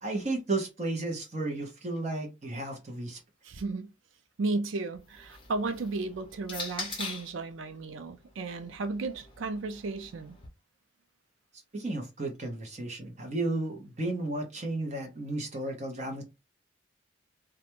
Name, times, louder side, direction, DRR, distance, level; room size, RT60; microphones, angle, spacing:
voice 1, 0.0-3.2 11.7-16.2, right 2 dB, 35° right, 0.8 m, -33 dB
voice 2, 3.4-3.9 4.4-10.4, right 3 dB, 90° right, 0.5 m, -34 dB
sound 1, 4.9-7.4 8.4-10.5, left 4 dB, 25° left, 0.6 m, -42 dB
2.4 x 2.2 x 2.9 m
head